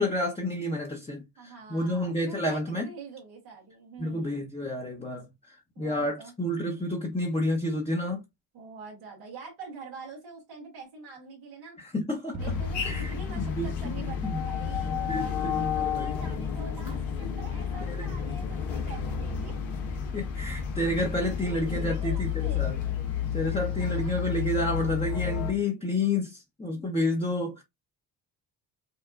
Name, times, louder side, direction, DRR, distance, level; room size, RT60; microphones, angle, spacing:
voice 1, 0.0-2.9 4.0-8.2 11.8-12.4 12.8-13.9 14.2-14.4 15.1-16.1 17.8-18.1 20.1-22.8 23.3-27.6, left 1 dB, 10° left, 1.0 m, -30 dB
voice 2, 1.4-4.5 5.7-6.3 8.5-11.8 12.4-19.5 21.3-22.8 23.8-24.1 25.2-25.3, right 4 dB, 90° right, 1.7 m, -45 dB
sound 1, 12.3-14.1, right 1 dB, 40° right, 1.3 m, -40 dB
sound 2, 12.4-25.5, left 8 dB, 70° left, 1.2 m, -31 dB
5.6 x 2.3 x 2.5 m
hypercardioid pair, 50°, 47 cm